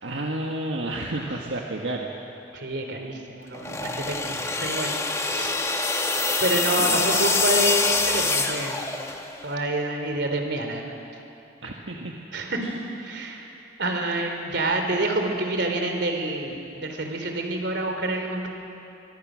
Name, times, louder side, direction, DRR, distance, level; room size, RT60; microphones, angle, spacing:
voice 1, 0.0-2.1 6.8-7.0 11.6-12.2, right 1 dB, 85° right, 0 dB, 1.7 m, -31 dB
voice 2, 2.5-5.6 6.4-8.8 9.4-11.0 12.3-12.6 13.0-13.5 13.8-18.5, right 1 dB, 65° right, 4 dB, 3.5 m, -28 dB
sound 1, 3.5-9.4, left 3 dB, 15° left, 1.3 m, -25 dB
24.0 x 23.5 x 6.4 m, 2.7 s
head